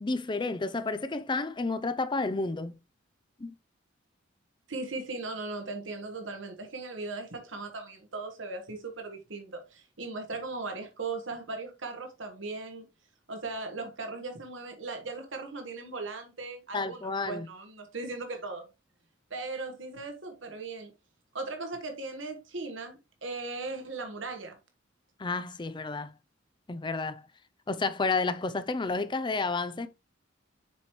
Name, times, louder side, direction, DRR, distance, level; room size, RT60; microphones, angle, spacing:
voice 1, 0.0-2.7 3.4-3.5 16.7-17.5 25.2-26.2 26.7-27.3 27.7-29.9, left 3 dB, 25° left, 0.5 m, -31 dB
voice 2, 4.7-12.9 13.3-18.6 19.3-20.9 21.3-24.6, right 3 dB, 70° right, 1.4 m, -38 dB
6.9 x 4.9 x 3.0 m
head